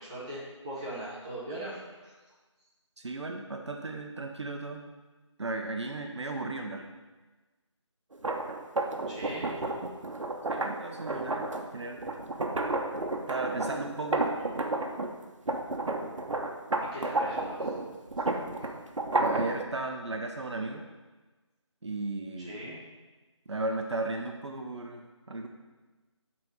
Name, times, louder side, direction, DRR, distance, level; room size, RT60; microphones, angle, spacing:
voice 1, 0.0-2.1 9.1-9.5 14.2-14.4 16.8-17.7 18.2-18.3 22.4-22.8, right 1 dB, 15° right, -8 dB, 1.2 m, -40 dB
voice 2, 3.0-4.9 5.4-6.9 10.5-11.5 11.7-12.0 13.3-14.3 19.2-20.9 21.8-22.6 23.5-25.5, right 2 dB, 65° right, 3 dB, 0.9 m, -35 dB
sound 1, 8.1-15.1 15.5-19.6, right 2 dB, 85° right, 1.1 m, -31 dB
7.6 x 4.2 x 6.3 m, 1.2 s
figure-of-eight pair, 175°, 16 cm